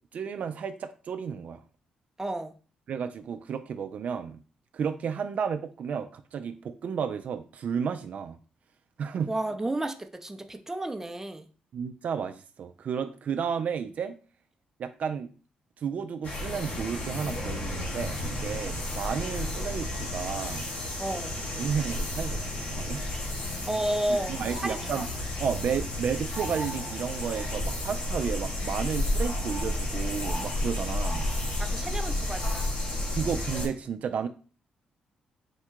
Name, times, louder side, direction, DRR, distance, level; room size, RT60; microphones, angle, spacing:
voice 1, 0.1-1.6 2.9-4.4 4.7-8.4 9.0-9.3 11.7-14.2 14.8-15.3 15.8-20.7 21.5-23.0 24.1-25.1 25.4-31.3 33.1-34.3, right 7 dB, 65° right, 8 dB, 0.3 m, -32 dB
voice 2, 2.2-2.5 9.3-11.5 21.0-21.4 23.7-24.3 24.6-25.0 31.6-32.7, right 1 dB, 15° right, 6 dB, 0.6 m, -32 dB
sound 1, 16.2-33.7, left 1 dB, 70° left, 1.9 m, -32 dB
4.6 x 2.3 x 4.5 m, 0.37 s
supercardioid pair, 60°, 3 cm